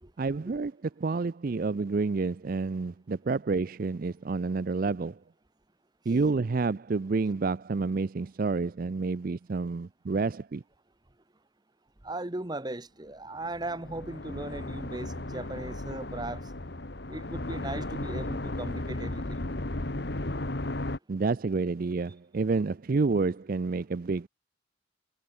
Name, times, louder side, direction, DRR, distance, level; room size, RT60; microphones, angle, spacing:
voice 1, 0.2-5.2 6.1-10.6 21.1-24.3, right 4 dB, 45° right, 0.4 m, -29 dB
voice 2, 12.0-16.5 17.1-19.4, right 2 dB, 20° right, 1.0 m, -38 dB
sound 1, 13.5-21.0, left 1 dB, 55° left, 1.5 m, -35 dB
head